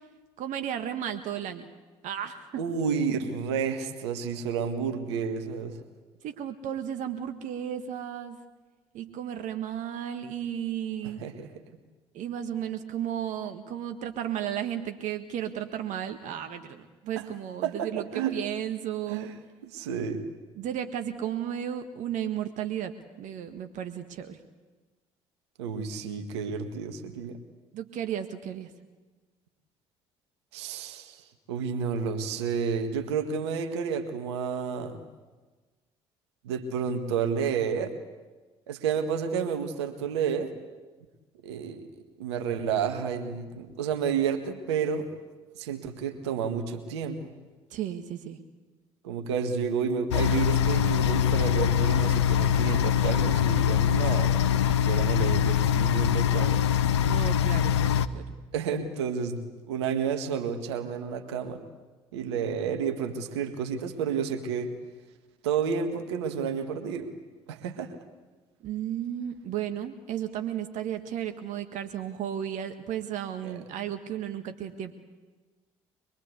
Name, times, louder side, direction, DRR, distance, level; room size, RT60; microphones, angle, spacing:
voice 1, 0.4-1.7 2.0-2.6 6.2-8.4 8.9-11.2 12.1-19.3 20.5-24.4 27.7-28.7 47.7-48.4 57.0-58.2 68.6-74.9, right 10 dB, 65° right, 8 dB, 1.6 m, -34 dB
voice 2, 2.6-5.8 11.2-11.5 17.2-17.3 17.6-18.4 19.1-19.3 19.6-20.2 25.6-27.4 30.5-31.2 31.5-35.0 36.4-37.9 38.7-40.5 41.4-41.8 42.2-45.1 45.6-47.3 49.0-56.6 58.5-61.6 62.1-64.7 65.4-67.1 67.5-68.0 73.4-73.6, right 6 dB, 85° right, 7 dB, 1.8 m, -30 dB
sound 1, 50.1-58.1, left 9 dB, 90° left, 0.8 m, -23 dB
24.0 x 22.5 x 8.3 m, 1.3 s
hypercardioid pair, 55°, 14 cm